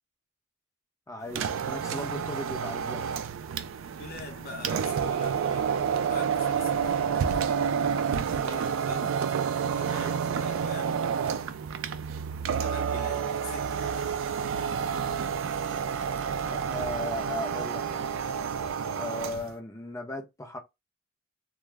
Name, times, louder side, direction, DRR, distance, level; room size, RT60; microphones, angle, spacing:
voice 1, 1.1-3.0 16.4-18.1 18.9-20.6, left 2 dB, 15° left, 0.6 m, -37 dB
sound 1, 1.3-19.5, right 7 dB, 75° right, 0.3 m, -29 dB
voice 2, 4.0-7.9 8.4-9.2 9.7-11.1 12.4-14.2, left 3 dB, 50° left, 0.8 m, -44 dB
2.2 x 2.0 x 3.3 m
head